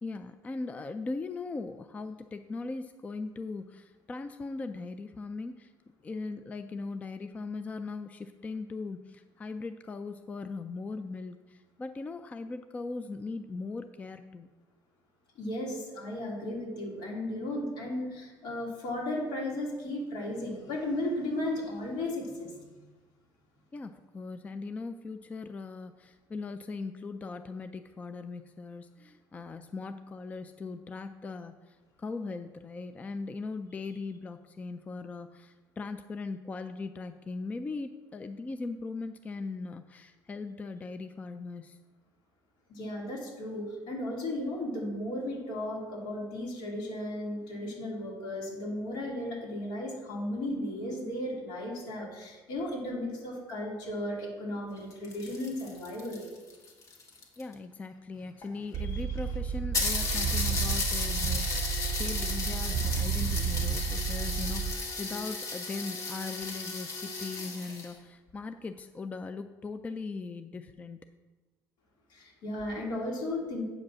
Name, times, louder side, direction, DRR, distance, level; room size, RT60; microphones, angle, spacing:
voice 1, 0.0-5.7 6.0-14.5 23.7-41.8 57.4-71.1, left 3 dB, 20° left, 9 dB, 0.3 m, -39 dB
voice 2, 15.3-22.8 42.7-56.3 58.8-59.0 72.1-73.6, left 1 dB, 75° left, -3 dB, 2.9 m, -35 dB
sound 1, 54.8-57.5 58.4-58.5 58.7-58.8 59.2-59.3 59.7-67.9, left 3 dB, 40° left, 1.6 m, -34 dB
sound 2, 58.7-64.7, right 6 dB, 65° right, 0.5 m, -32 dB
8.5 x 5.1 x 6.1 m, 1.2 s
cardioid pair, 140°, 8 cm